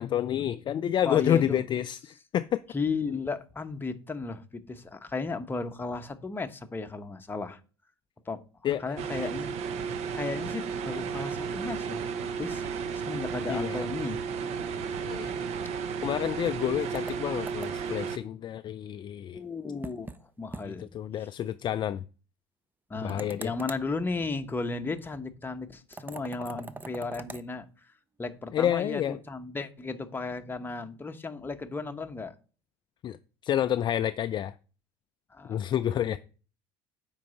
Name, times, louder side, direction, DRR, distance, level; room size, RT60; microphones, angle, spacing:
voice 1, 0.0-2.6 8.6-8.8 13.5-13.8 15.1-15.3 16.0-19.4 20.6-22.0 23.0-23.5 28.5-29.2 33.0-33.2 33.4-34.5 35.5-36.2, left 10 dB, 40° left, 0.4 m, -29 dB
voice 2, 1.0-1.6 2.7-7.6 8.3-8.4 8.8-9.6 10.1-12.0 12.4-14.2 14.7-14.8 15.6-15.7 19.3-20.1 20.4-20.9 21.2-21.3 22.9-27.9 28.2-32.3 35.3-35.6 36.0-36.2, left 4 dB, 15° left, 0.9 m, -35 dB
sound 1, 9.0-18.2, right 6 dB, 55° right, 0.8 m, -33 dB
sound 2, 16.9-18.0 19.8-20.2 20.5-20.7 21.0-21.1 23.1-23.9 25.9-27.5, right 3 dB, 15° right, 0.5 m, -42 dB
7.5 x 4.8 x 4.2 m
supercardioid pair, 85°, 13 cm